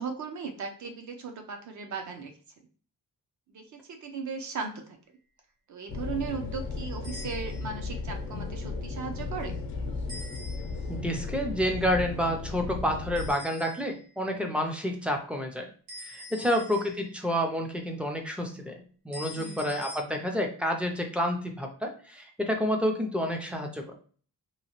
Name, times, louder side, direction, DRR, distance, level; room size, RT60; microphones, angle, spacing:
voice 1, 0.0-2.3 3.5-3.6 4.0-4.7 5.7-9.5 16.4-16.6 19.4-19.7, right 5 dB, 55° right, 5 dB, 0.7 m, -37 dB
sound 1, 5.9-13.3, left 4 dB, 90° left, 0.7 m, -35 dB
sound 2, 7.0-7.8 10.1-11.0 13.1-14.1 15.9-17.3 19.1-20.0, left 2 dB, 90° right, 1.5 m, -45 dB
voice 2, 10.9-15.7 16.0-18.7 19.0-23.9, equal, 5° right, 3 dB, 0.4 m, -29 dB
2.9 x 2.7 x 2.9 m, 0.43 s
wide cardioid pair, 155°, 35 cm